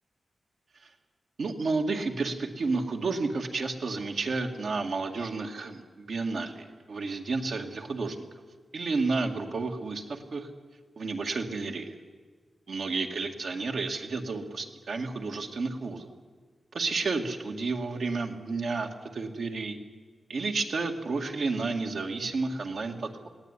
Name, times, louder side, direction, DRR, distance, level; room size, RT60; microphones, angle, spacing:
voice 1, 1.4-8.3 8.7-10.5 11.0-11.9 12.7-16.1 16.7-19.8 20.3-23.3, right 3 dB, 75° right, 3 dB, 2.2 m, -31 dB
20.0 x 17.0 x 9.9 m, 1.5 s
wide cardioid pair, 105°, 0 cm